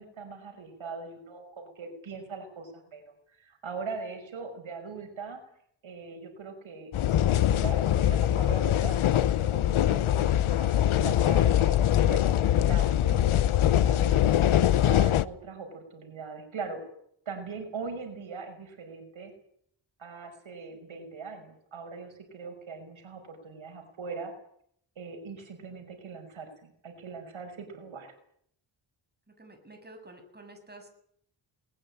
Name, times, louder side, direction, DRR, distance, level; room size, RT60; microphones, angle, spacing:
voice 1, 0.0-5.4 5.8-6.9 7.3-11.7 12.0-13.2 13.6-16.9 17.3-19.3 20.0-24.3 25.0-28.1, right 4 dB, 75° right, 6 dB, 5.8 m, -41 dB
sound 1, 6.9-15.2, left 11 dB, 85° left, 0.9 m, -23 dB
voice 2, 29.4-30.9, right 2 dB, 20° right, 5 dB, 7.4 m, -50 dB
20.5 x 20.5 x 8.8 m, 0.66 s
wide cardioid pair, 90°, 48 cm